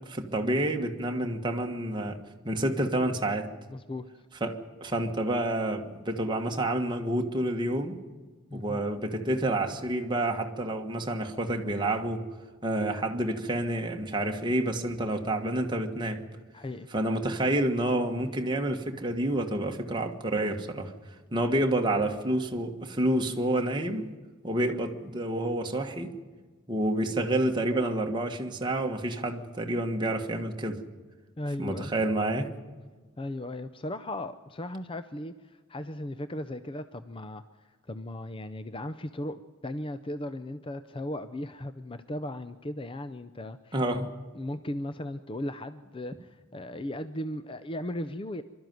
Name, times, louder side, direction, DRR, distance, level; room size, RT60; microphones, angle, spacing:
voice 1, 0.0-2.2 2.4-3.5 4.4-4.5 4.8-8.0 8.5-12.2 12.6-16.2 16.9-20.9 21.3-24.1 24.4-26.1 26.7-30.8 31.6-32.5 43.7-44.1, right 1 dB, 20° right, 3 dB, 1.5 m, -29 dB
voice 2, 3.7-4.1 8.5-8.8 16.5-16.9 31.4-31.9 33.2-37.4 37.9-43.8 44.3-48.4, left 1 dB, 25° left, 11 dB, 0.5 m, -37 dB
23.5 x 12.5 x 9.3 m, 1.4 s
head